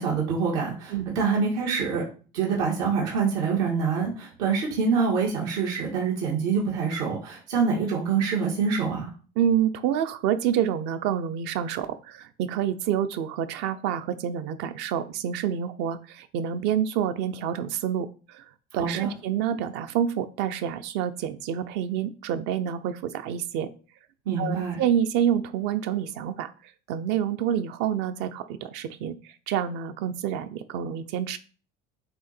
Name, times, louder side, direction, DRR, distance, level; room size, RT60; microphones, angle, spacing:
voice 1, 0.0-2.0 2.3-9.1 18.7-19.1 24.3-24.8, right 5 dB, 90° right, -3 dB, 2.4 m, -26 dB
voice 2, 9.4-18.4 18.7-23.7 24.4-26.5 26.9-29.2 29.5-31.4, right 9 dB, 65° right, 11 dB, 0.7 m, -28 dB
7.8 x 2.9 x 4.4 m, 0.38 s
cardioid pair, 150°, 19 cm